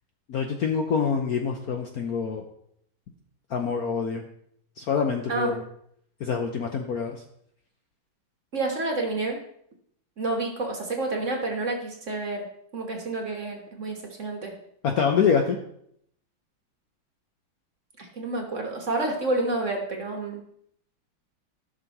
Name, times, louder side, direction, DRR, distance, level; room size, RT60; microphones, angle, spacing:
voice 1, 0.3-2.4 3.5-4.2 4.8-5.6 6.2-7.2 14.8-15.6, left 6 dB, 65° left, 3 dB, 1.0 m, -25 dB
voice 2, 8.5-9.4 10.2-12.4 12.7-14.5 18.0-20.4, right 2 dB, 45° right, 2 dB, 1.3 m, -29 dB
14.5 x 6.2 x 2.9 m, 0.71 s
omnidirectional pair, 2.2 m